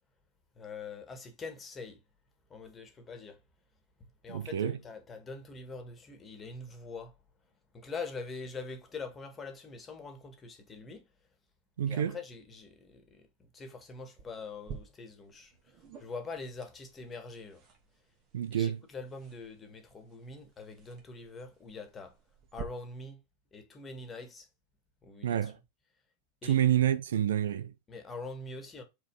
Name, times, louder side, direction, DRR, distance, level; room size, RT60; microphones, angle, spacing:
voice 1, 0.6-2.0 2.5-3.4 4.2-7.1 7.7-11.1 11.9-17.6 18.5-22.2 22.5-23.2 23.5-24.5 25.0-25.5 26.4-26.6 27.9-28.8, left 3 dB, 20° left, 2.0 m, -44 dB
voice 2, 4.3-4.8 11.8-12.2 18.3-18.8 25.2-25.6 26.4-27.7, right 10 dB, 60° right, 0.5 m, -28 dB
sound 1, 14.2-22.6, right 7 dB, 35° right, 2.5 m, -51 dB
5.7 x 4.7 x 5.4 m
figure-of-eight pair, 90°, 0 cm